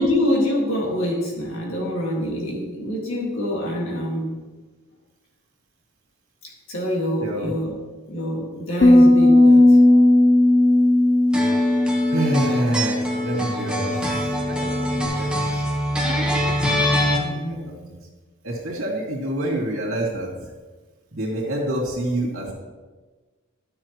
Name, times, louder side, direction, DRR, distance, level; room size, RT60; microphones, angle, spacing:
voice 1, 0.0-4.3 6.7-7.7 8.1-9.8 17.2-17.6, left 1 dB, 65° left, -3 dB, 2.0 m, -25 dB
voice 2, 7.2-7.5 12.1-15.7 17.5-18.0 18.4-20.3 21.1-22.5, right 1 dB, 70° right, -3 dB, 2.6 m, -27 dB
sound 1, 8.8-15.1, left 1 dB, 40° left, 0.6 m, -17 dB
sound 2, 11.3-17.2, equal, 5° right, 1.1 m, -24 dB
12.5 x 6.9 x 3.0 m, 1.3 s
head